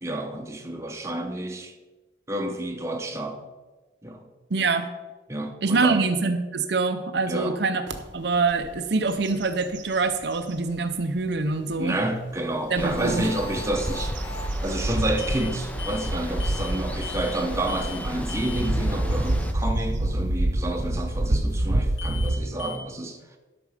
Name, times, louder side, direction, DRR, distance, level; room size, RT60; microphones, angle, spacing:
voice 1, 0.0-1.7 2.3-3.5 4.0-4.3 5.3-6.1 7.3-7.6 11.8-14.2 14.6-23.4, right 1 dB, 15° right, 3 dB, 0.9 m, -29 dB
voice 2, 4.5-4.9 5.6-7.8 8.1-12.0 12.7-13.3, right 3 dB, 60° right, 8 dB, 0.6 m, -25 dB
sound 1, 7.9-8.0 8.5-8.8 9.1-10.6 11.2-11.3 13.0-22.4, right 1 dB, 80° right, 0.9 m, -28 dB
Water, 12.7-19.5, equal, 10° left, 0.6 m, -35 dB
sound 2, 13.0-14.5 15.2-15.5 15.8-16.1 16.4-16.8 17.0-17.4 17.7-18.0 18.3-18.7 22.0-22.3 22.6-22.8, left 6 dB, 65° left, 1.3 m, -39 dB
12.0 x 6.0 x 5.0 m, 1.2 s
head